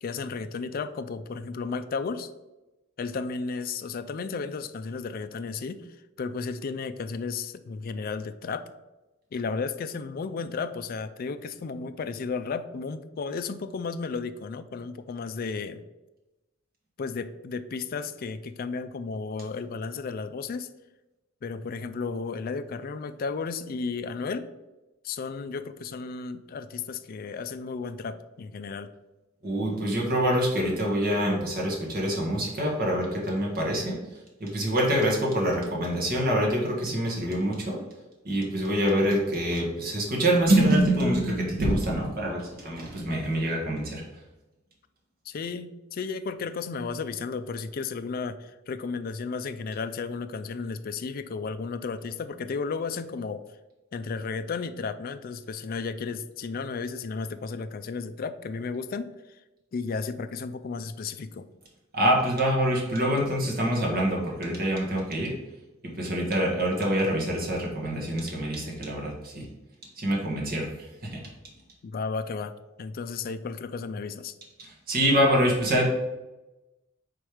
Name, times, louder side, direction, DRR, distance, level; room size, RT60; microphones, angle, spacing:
voice 1, 0.0-2.3 3.0-5.9 6.2-8.7 9.3-15.8 17.0-20.7 21.4-24.5 25.0-28.9 45.3-53.4 53.9-59.4 59.7-61.5 71.8-72.5 72.8-74.4, left 4 dB, 45° left, 11 dB, 0.4 m, -33 dB
voice 2, 29.4-34.0 34.4-37.8 38.2-44.0 61.9-65.3 65.9-69.5 70.0-70.7 71.0-71.2 74.6-75.9, right 1 dB, 45° right, -1 dB, 1.5 m, -25 dB
4.7 x 4.3 x 4.9 m, 1.0 s
head